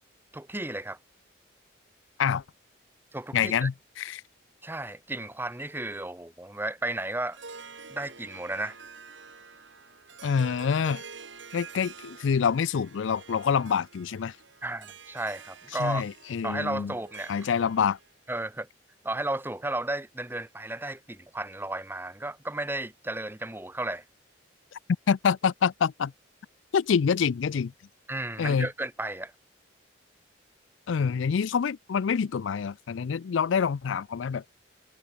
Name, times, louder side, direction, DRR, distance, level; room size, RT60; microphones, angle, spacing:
voice 1, 0.3-1.0 3.1-3.7 4.6-7.4 7.9-8.8 14.6-16.0 16.4-17.4 18.3-18.7 19.0-24.0 28.1-29.3, right 2 dB, 10° right, 1.1 m, -33 dB
voice 2, 3.3-4.2 10.2-11.0 11.5-14.4 15.8-16.9 17.3-18.0 25.1-26.1 26.7-27.7 28.4-28.7 30.9-34.4, left 6 dB, 80° left, 0.4 m, -26 dB
Harp, 7.2-18.1, right 5 dB, 75° right, 4.3 m, -48 dB
head